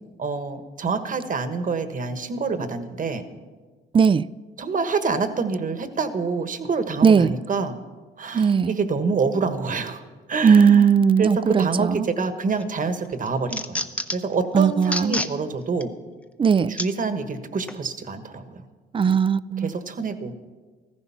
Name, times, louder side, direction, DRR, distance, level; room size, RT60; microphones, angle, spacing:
voice 1, 0.2-3.2 4.6-7.8 8.2-10.0 10.3-10.9 11.2-13.8 14.1-15.9 16.7-18.6 19.6-20.3, right 4 dB, 40° right, 1.4 m, -27 dB
voice 2, 3.9-4.3 7.0-7.4 8.3-8.8 10.4-12.1 14.5-15.2 16.4-16.7 18.9-19.7, right 6 dB, 25° right, 0.4 m, -18 dB
sound 1, 12.2-12.7 13.0-14.3 14.8-15.3 15.8-15.9 16.8-16.9 17.7-17.8, left 1 dB, 5° left, 0.8 m, -29 dB
14.5 x 14.5 x 5.8 m
cardioid pair, 90°, 20 cm